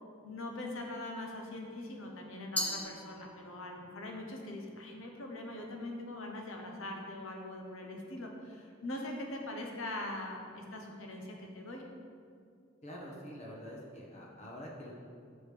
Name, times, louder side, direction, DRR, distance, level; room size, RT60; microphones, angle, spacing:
voice 1, 0.2-11.8, left 1 dB, 75° left, 1 dB, 1.0 m, -42 dB
Glass, 2.6-3.8, left 1 dB, 5° left, 0.4 m, -37 dB
voice 2, 12.8-14.9, equal, 35° left, -3 dB, 0.9 m, -46 dB
6.4 x 4.9 x 5.1 m, 2.2 s
head